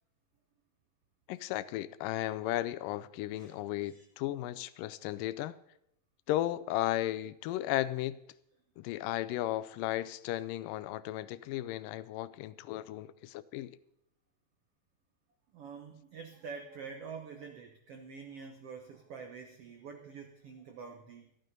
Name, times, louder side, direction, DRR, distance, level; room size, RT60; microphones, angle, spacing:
voice 1, 1.3-5.6 6.3-8.2 8.8-13.8, left 14 dB, 80° left, 15 dB, 2.1 m, -35 dB
voice 2, 15.5-21.3, right 5 dB, 85° right, 5 dB, 1.3 m, -46 dB
13.0 x 12.5 x 5.3 m, 0.78 s
omnidirectional pair, 4.3 m